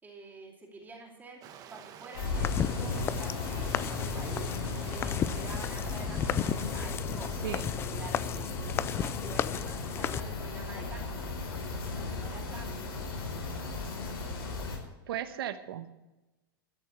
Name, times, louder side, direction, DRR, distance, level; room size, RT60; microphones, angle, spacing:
voice 1, 0.0-1.4 1.7-7.5 7.8-13.1, right 3 dB, 15° right, -2 dB, 2.8 m, -48 dB
Stream, 1.4-6.7, right 9 dB, 30° right, 1.2 m, -49 dB
sound 1, 2.1-14.8, left 3 dB, 90° left, 4.3 m, -36 dB
sound 2, 2.3-10.2, left 9 dB, 20° left, 0.3 m, -34 dB
voice 2, 15.1-15.9, right 11 dB, 75° right, 10 dB, 1.2 m, -36 dB
13.0 x 6.7 x 8.5 m, 1.0 s
supercardioid pair, 145°, 12 cm